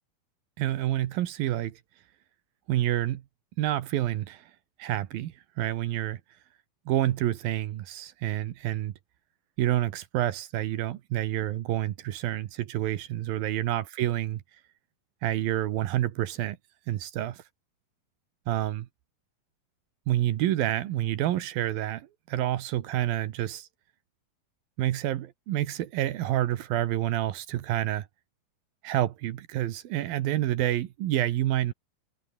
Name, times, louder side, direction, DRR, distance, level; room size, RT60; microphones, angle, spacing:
voice 1, 0.6-1.8 2.7-3.2 3.6-4.4 4.8-6.2 6.9-8.9 9.6-14.4 15.2-16.6 16.9-17.4 18.5-18.9 20.1-23.7 24.8-28.1 28.8-31.7, right 13 dB, 75° right, 2.9 m, -28 dB
omnidirectional pair, 4.4 m